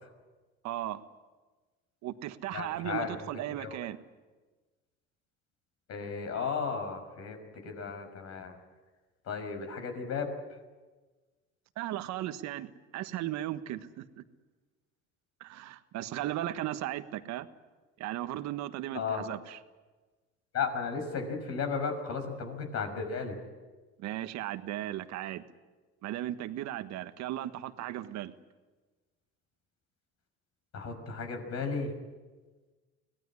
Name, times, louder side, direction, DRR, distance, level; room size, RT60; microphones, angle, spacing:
voice 1, 0.6-1.0 2.0-4.0 11.8-12.7 12.9-14.2 15.4-17.5 18.0-19.6 24.0-25.4 26.0-28.3, right 13 dB, 65° right, 10 dB, 1.5 m, -36 dB
voice 2, 2.5-3.1 3.6-3.8 5.9-7.4 7.6-8.5 9.2-10.3 18.9-19.2 20.5-23.4 30.7-31.9, left 5 dB, 55° left, 6 dB, 6.1 m, -34 dB
24.0 x 18.5 x 9.9 m, 1.3 s
supercardioid pair, 90°, 30 cm